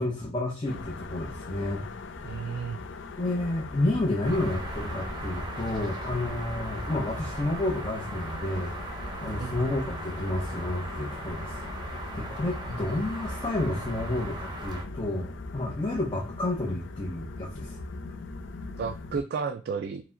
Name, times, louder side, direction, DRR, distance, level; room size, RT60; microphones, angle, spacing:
voice 1, 0.0-1.9 2.2-2.6 3.2-11.6 11.8-17.8, left 1 dB, 25° left, -2 dB, 0.7 m, -31 dB
sound 1, 0.7-19.2, left 3 dB, 85° left, 0.5 m, -41 dB
voice 2, 2.2-2.8 9.4-9.7 18.8-20.0, right 5 dB, 60° right, 9 dB, 0.3 m, -32 dB
sound 2, 4.2-14.8, right 1 dB, 25° right, 0.7 m, -37 dB
4.7 x 2.1 x 3.8 m, 0.35 s
head